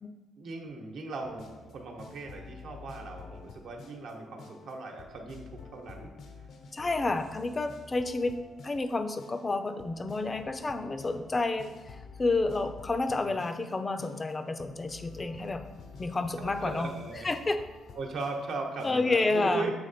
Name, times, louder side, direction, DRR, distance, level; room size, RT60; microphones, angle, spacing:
voice 1, 0.4-6.2 13.2-13.4 16.4-17.3 18.0-19.7, right 3 dB, 70° right, 2 dB, 1.0 m, -38 dB
sound 1, 1.2-19.1, left 4 dB, 70° left, 0.7 m, -49 dB
voice 2, 6.7-8.3 8.6-11.7 12.2-15.7 16.0-16.9 17.2-17.6 18.8-19.7, left 3 dB, 25° left, 9 dB, 0.5 m, -30 dB
7.6 x 2.9 x 4.2 m, 1.2 s
cardioid pair, 90°, 0 cm